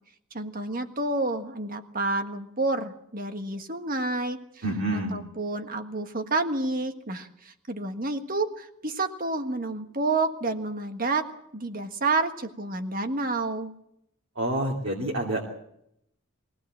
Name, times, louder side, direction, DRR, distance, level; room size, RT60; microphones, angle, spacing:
voice 1, 0.3-4.6 4.9-11.3 11.5-13.7, right 2 dB, 40° right, 7 dB, 1.6 m, -29 dB
voice 2, 4.6-5.2 14.4-15.5, right 1 dB, 60° right, -2 dB, 2.8 m, -28 dB
22.5 x 17.0 x 7.6 m, 0.77 s
head